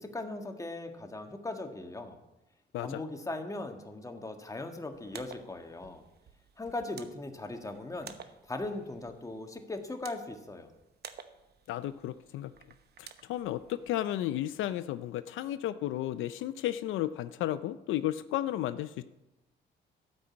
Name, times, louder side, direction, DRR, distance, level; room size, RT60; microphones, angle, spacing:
voice 1, 0.0-2.2 2.8-6.0 6.6-8.1 8.5-10.7, left 2 dB, 15° left, 5 dB, 1.6 m, -39 dB
sound 1, 4.9-13.9, right 7 dB, 55° right, 1.0 m, -53 dB
voice 2, 11.7-12.5 13.0-19.0, left 13 dB, 85° left, 13 dB, 0.5 m, -33 dB
13.0 x 5.3 x 8.5 m, 0.96 s
cardioid pair, 90°, 20 cm